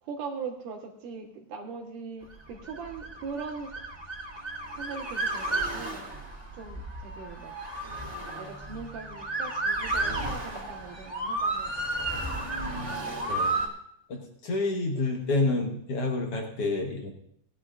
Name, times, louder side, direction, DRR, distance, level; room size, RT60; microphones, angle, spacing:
voice 1, 0.0-3.8 4.7-7.6 8.4-12.7, right 5 dB, 65° right, -1 dB, 2.7 m, -41 dB
Motor vehicle (road) / Siren, 2.5-13.7, right 2 dB, 10° right, 2.5 m, -32 dB
voice 2, 14.1-17.1, left 2 dB, 60° left, 2 dB, 1.6 m, -28 dB
18.5 x 11.5 x 2.5 m, 0.70 s
omnidirectional pair, 4.4 m